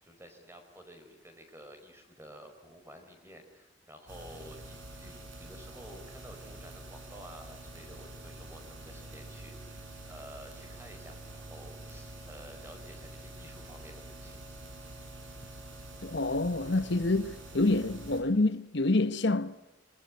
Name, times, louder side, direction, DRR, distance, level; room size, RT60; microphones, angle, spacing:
voice 1, 0.0-14.4, equal, 15° right, 5.1 m, -51 dB
sound 1, 4.1-18.2, right 1 dB, 75° right, 7.3 m, -47 dB
voice 2, 16.0-19.6, left 2 dB, 60° left, 1.1 m, -27 dB
26.5 x 24.0 x 9.4 m
head